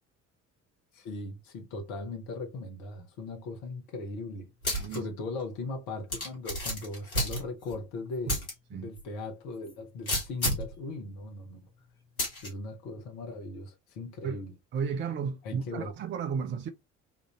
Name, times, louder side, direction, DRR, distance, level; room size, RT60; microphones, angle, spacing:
voice 1, 0.9-4.5 4.9-11.6 12.4-14.5 15.4-15.9, left 3 dB, 55° left, 0.9 m, -39 dB
sound 1, 4.6-5.0 5.4-5.5 6.1-7.8 8.3-8.5 9.0-9.1 10.1-10.7 12.2-12.5, equal, 85° left, 1.0 m, -30 dB
voice 2, 14.7-16.7, right 6 dB, 30° right, 0.4 m, -33 dB
3.6 x 2.5 x 2.9 m
figure-of-eight pair, 50°, 41 cm